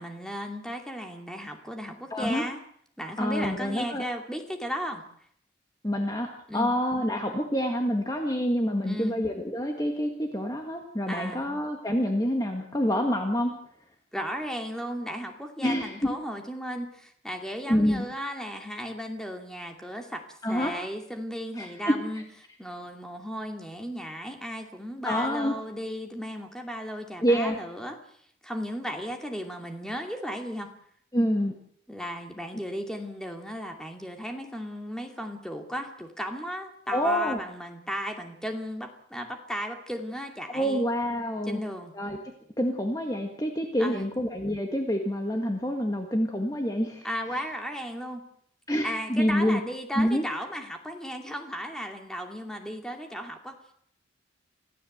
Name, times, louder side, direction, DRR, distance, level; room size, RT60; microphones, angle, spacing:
voice 1, 0.0-2.6 3.0-5.0 6.5-6.7 8.8-9.2 11.1-11.5 14.1-22.2 22.6-28.0 28.4-30.7 31.9-40.9 41.5-41.9 43.8-44.1 47.0-48.2 48.8-53.6, equal, 5° left, 3 dB, 2.6 m, -35 dB
voice 2, 2.1-2.4 3.2-4.0 5.8-13.5 15.6-16.2 17.7-18.1 20.4-20.8 21.6-22.0 25.0-25.6 27.2-27.6 31.1-31.5 36.9-37.4 40.5-41.6 41.9-42.2 42.6-47.1 48.7-49.6 50.0-50.2, equal, 20° left, 3 dB, 1.8 m, -27 dB
25.5 x 16.0 x 8.0 m, 0.67 s
head